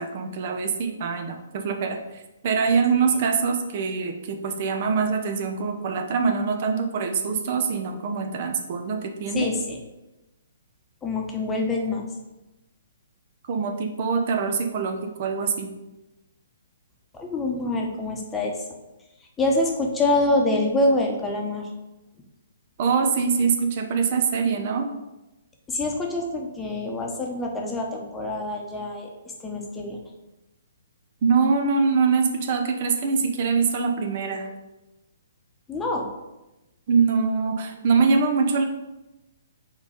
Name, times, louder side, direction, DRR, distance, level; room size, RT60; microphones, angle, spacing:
voice 1, 0.0-9.5 13.5-15.7 22.8-24.9 31.2-34.5 36.9-38.6, right 5 dB, 45° right, 5 dB, 0.9 m, -24 dB
voice 2, 9.3-9.8 11.0-12.0 17.1-18.6 19.4-21.7 25.7-29.1 29.4-30.0 35.7-36.1, left 2 dB, 10° left, 0 dB, 1.1 m, -25 dB
4.9 x 4.0 x 5.0 m, 1.0 s
figure-of-eight pair, 130°, 0 cm